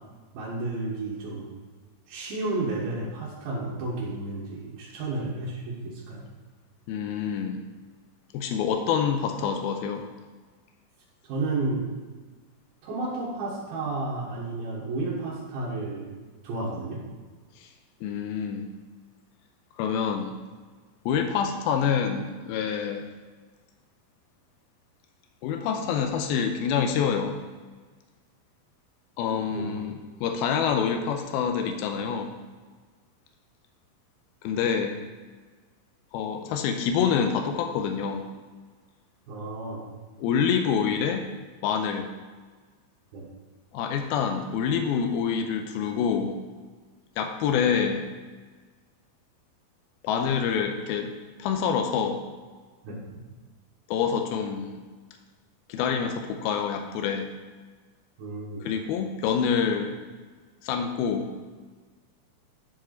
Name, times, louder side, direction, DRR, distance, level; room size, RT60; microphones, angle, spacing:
voice 1, 0.3-1.6 2.1-6.3 11.2-11.9 12.8-16.2 16.4-17.0 29.5-29.8 39.3-39.9 43.1-43.3 52.8-53.2 58.2-58.7, right 2 dB, 85° right, -7 dB, 3.1 m, -32 dB
voice 2, 6.9-7.6 8.3-10.1 17.6-17.7 18.0-18.7 19.8-20.4 21.1-23.1 25.4-27.4 29.2-32.3 34.4-35.0 36.1-38.3 40.2-41.3 41.6-42.1 43.7-46.4 47.2-48.1 50.0-51.1 51.4-52.2 53.9-54.8 55.7-57.3 58.6-60.0 60.6-61.3, left 7 dB, 90° left, 5 dB, 2.6 m, -26 dB
10.5 x 4.8 x 4.4 m, 1.4 s
omnidirectional pair, 4.2 m